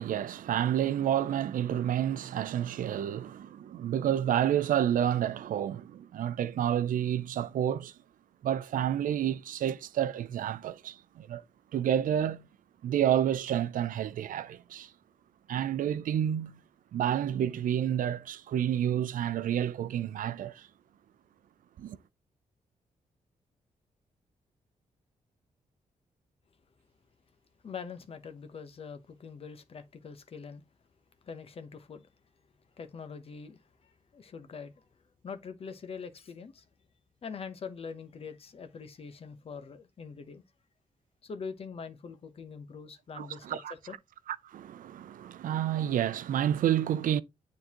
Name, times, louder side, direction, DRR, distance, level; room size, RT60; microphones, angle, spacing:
voice 1, 0.0-7.9 8.4-11.4 11.7-12.5 12.8-14.9 15.5-16.6 16.9-20.7 21.8-22.0 43.2-43.7 44.4-47.2, right 10 dB, 80° right, 0.5 m, -29 dB
voice 2, 27.6-30.6 31.2-32.1 32.8-34.9 35.2-36.7 37.2-40.4 41.2-43.9, left 5 dB, 45° left, 1.0 m, -43 dB
9.6 x 3.8 x 3.0 m
wide cardioid pair, 145°, 14 cm